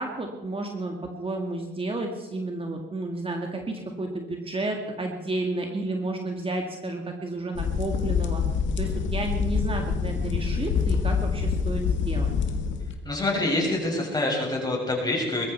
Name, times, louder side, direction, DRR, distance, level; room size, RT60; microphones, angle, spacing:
voice 1, 0.0-8.4 8.8-12.3, right 2 dB, 25° right, 2 dB, 2.0 m, -31 dB
sound 1, 7.5-12.9, left 6 dB, 70° left, 1.9 m, -26 dB
voice 2, 13.0-15.5, left 2 dB, 20° left, -1 dB, 6.6 m, -26 dB
21.0 x 14.0 x 4.5 m, 1.2 s
cardioid pair, 90°, 20 cm